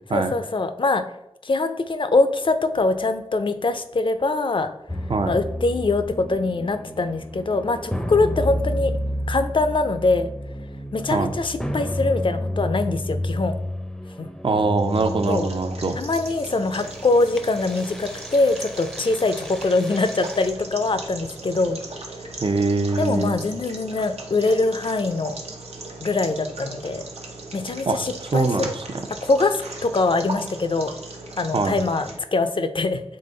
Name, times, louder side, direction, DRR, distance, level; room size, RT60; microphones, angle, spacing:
voice 1, 0.1-1.0 1.4-4.7 5.2-8.9 9.3-10.3 10.9-13.5 14.2-14.3 15.3-15.5 16.0-21.8 23.0-25.4 26.0-27.0 27.5-28.7 29.2-30.9 31.4-33.0, left 3 dB, 55° left, 10 dB, 0.5 m, -23 dB
sound 1, 4.9-20.5, equal, 5° left, 0.5 m, -31 dB
voice 2, 14.4-16.0 22.4-23.4 27.9-28.0 28.3-28.8 31.5-31.8, right 3 dB, 55° right, 7 dB, 0.5 m, -22 dB
sound 2, 14.7-32.2, right 2 dB, 85° right, 0.8 m, -38 dB
3.9 x 3.5 x 3.8 m, 0.85 s
cardioid pair, 45°, 10 cm